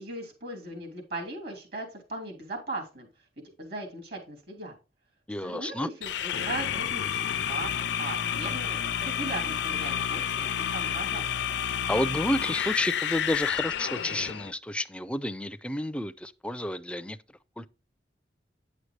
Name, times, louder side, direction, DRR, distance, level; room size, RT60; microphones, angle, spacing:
voice 1, 0.0-3.1 3.6-4.8 5.4-11.3, right 2 dB, 65° right, 3.0 m, -38 dB
voice 2, 5.3-5.9 11.6-17.2 17.6-17.7, left 1 dB, 5° left, 0.4 m, -31 dB
sound 1, 6.0-14.5, left 9 dB, 80° left, 0.4 m, -30 dB
9.6 x 6.5 x 3.2 m
head